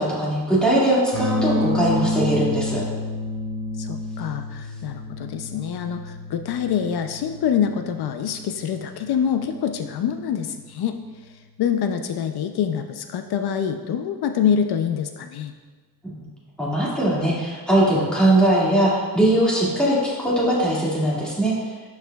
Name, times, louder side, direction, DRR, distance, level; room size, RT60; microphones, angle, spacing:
voice 1, 0.0-2.8 16.0-16.3 16.6-21.5, right 1 dB, ahead, -8 dB, 2.0 m, -20 dB
sound 1, 1.1-11.0, left 2 dB, 70° right, 2.1 m, -30 dB
voice 2, 3.8-11.0 11.6-15.5, left 8 dB, 80° left, 7 dB, 0.5 m, -25 dB
12.0 x 4.8 x 2.3 m, 1.4 s
wide cardioid pair, 165°, 38 cm